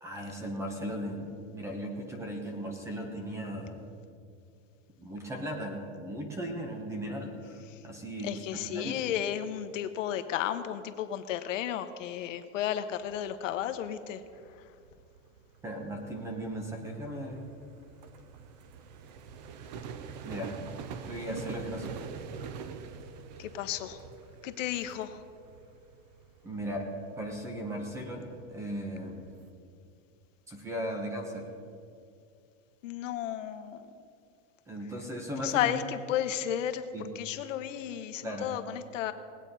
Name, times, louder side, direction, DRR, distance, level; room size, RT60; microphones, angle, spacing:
voice 1, 0.0-3.8 5.0-8.3 8.7-9.1 15.6-17.5 20.2-20.6 21.1-22.0 26.4-26.9 27.2-29.3 30.5-31.5 34.7-35.7 36.9-37.1 38.2-38.5, equal, 5° right, 2 dB, 0.9 m, -37 dB
voice 2, 8.2-14.2 14.5-14.6 23.4-24.0 24.4-25.2 32.8-33.9 35.4-39.1, left 10 dB, 75° left, 10 dB, 1.0 m, -33 dB
sound 1, 12.9-29.5, right 6 dB, 35° right, 0.5 m, -46 dB
19.0 x 8.5 x 5.4 m, 2.4 s
supercardioid pair, 180°, 38 cm